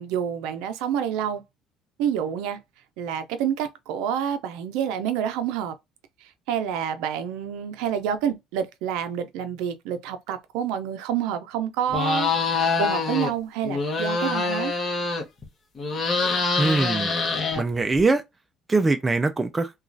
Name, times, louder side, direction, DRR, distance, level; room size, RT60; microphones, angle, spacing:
voice 1, 0.0-1.4 2.0-2.6 3.0-5.7 6.2-14.7, right 9 dB, 90° right, 0.5 m, -28 dB
sound 1, 11.9-13.3 13.6-15.4 15.8-18.0, left 4 dB, 30° left, 1.0 m, -25 dB
voice 2, 16.6-17.1 17.6-18.2 18.7-19.7, right 3 dB, 15° right, 0.3 m, -22 dB
3.0 x 2.3 x 2.5 m
cardioid pair, 135°, 0 cm